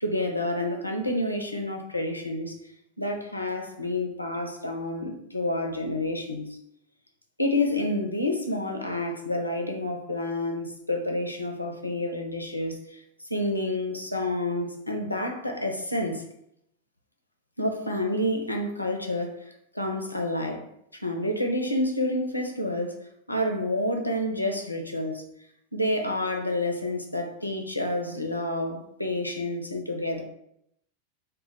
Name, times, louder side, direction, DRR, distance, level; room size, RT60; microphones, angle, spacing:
voice 1, 0.0-2.6 3.0-6.6 7.4-16.2 17.6-23.0 23.3-25.2 25.7-30.2, left 1 dB, 85° left, 3 dB, 0.4 m, -29 dB
2.1 x 2.0 x 3.8 m, 0.74 s
figure-of-eight pair, 90°, 0 cm